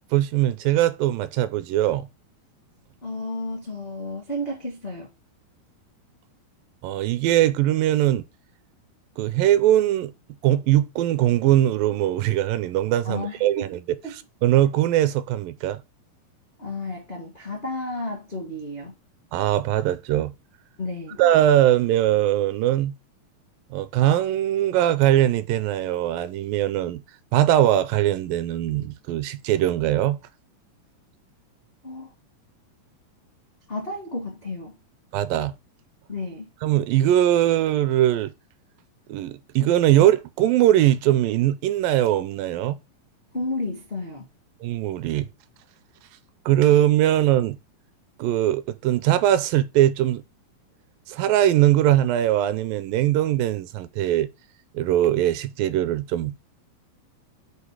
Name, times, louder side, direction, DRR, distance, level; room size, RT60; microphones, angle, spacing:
voice 1, 0.1-2.1 6.8-8.2 9.2-10.1 10.4-15.8 19.3-20.3 21.2-23.0 23.7-27.0 27.3-30.2 35.1-35.6 36.6-38.3 39.1-42.8 44.6-45.3 46.5-47.6 48.2-50.2 51.1-54.3 54.7-56.4, right 13 dB, 80° right, 2.1 m, -21 dB
voice 2, 3.0-5.1 13.0-13.6 14.0-14.2 16.6-18.9 20.8-21.2 31.8-32.1 33.7-34.7 36.1-36.5 43.3-44.3, left 2 dB, 50° left, 0.7 m, -32 dB
8.0 x 2.7 x 4.7 m
omnidirectional pair, 4.1 m